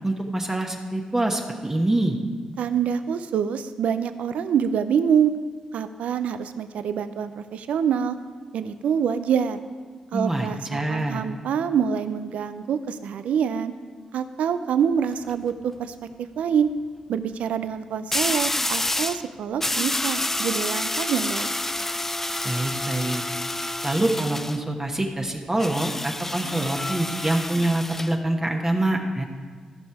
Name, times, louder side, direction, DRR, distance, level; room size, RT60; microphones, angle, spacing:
voice 1, 0.0-2.2 10.1-11.2 22.4-23.2 23.8-29.2, right 1 dB, 20° right, 2 dB, 1.1 m, -25 dB
voice 2, 2.6-5.3 5.7-8.2 8.5-9.6 10.1-13.7 14.1-15.9 16.4-16.7 17.1-21.5, right 7 dB, 80° right, 11 dB, 0.4 m, -25 dB
sound 1, 15.0-15.3 18.1-19.2 19.6-24.6 25.6-28.1, left 1 dB, 15° left, 0.4 m, -28 dB
13.5 x 5.5 x 4.7 m, 1.5 s
cardioid pair, 60°, 2 cm